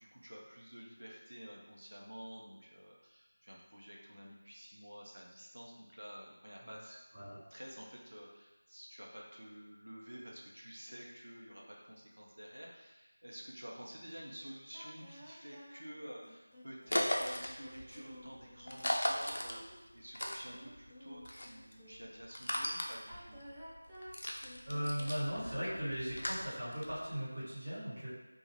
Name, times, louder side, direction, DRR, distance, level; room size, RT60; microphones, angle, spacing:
voice 1, 0.0-7.0 7.5-23.4, equal, 80° right, -3 dB, 0.7 m, -50 dB
sound 1, 14.7-22.2 22.9-27.0, equal, 5° right, 0.4 m, -54 dB
sound 2, 16.9-20.9 21.2-27.2, left 1 dB, 60° left, 0.4 m, -38 dB
voice 2, 24.6-28.1, equal, 35° right, -12 dB, 1.4 m, -38 dB
2.6 x 2.3 x 3.2 m, 1.0 s
figure-of-eight pair, 170°, 0 cm